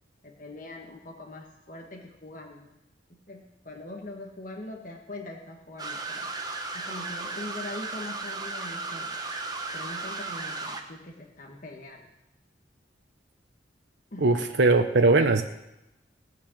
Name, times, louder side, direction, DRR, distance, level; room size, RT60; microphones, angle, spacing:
voice 1, 0.2-2.7 3.1-6.3 6.7-9.2 9.7-12.0 14.1-14.3, left 2 dB, 45° left, 0 dB, 1.7 m, -42 dB
sound 1, 5.8-10.8, right 3 dB, 20° right, 1.2 m, -35 dB
voice 2, 14.2-15.4, right 3 dB, 75° right, 6 dB, 0.8 m, -20 dB
18.0 x 6.3 x 8.6 m, 0.90 s
head